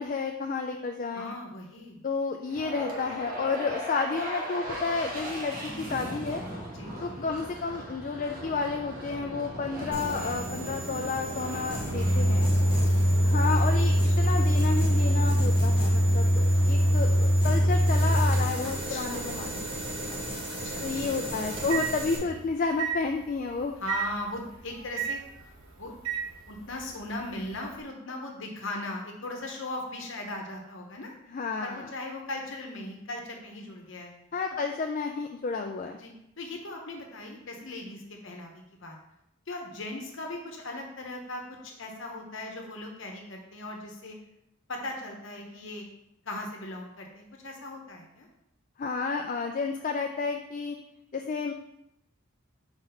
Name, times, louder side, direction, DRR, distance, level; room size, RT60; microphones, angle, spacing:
voice 1, 0.0-1.3 2.0-6.4 7.0-12.5 13.2-19.6 20.1-20.2 20.8-23.8 31.3-31.9 34.3-36.0 48.8-50.8 51.1-51.5, left 4 dB, 40° left, 3 dB, 0.3 m, -31 dB
voice 2, 1.1-2.0 6.7-7.3 12.2-13.5 14.0-14.4 16.5-16.7 18.9-19.4 20.5-21.1 23.8-25.2 25.8-26.1 26.5-31.1 31.6-34.1 35.9-36.1 36.4-39.0 39.5-44.2 44.7-45.9 46.2-48.3, left 2 dB, 65° left, 1 dB, 0.9 m, -39 dB
sound 1, 2.5-16.7, equal, 40° right, 1.2 m, -39 dB
Microwave oven, 9.8-22.4 22.8-23.0 23.9-24.0 25.0-25.1 26.1-26.2, equal, 70° right, 1.0 m, -25 dB
sound 2, 9.9-22.2, right 1 dB, 25° right, 1.2 m, -39 dB
4.4 x 4.0 x 5.6 m, 0.81 s
head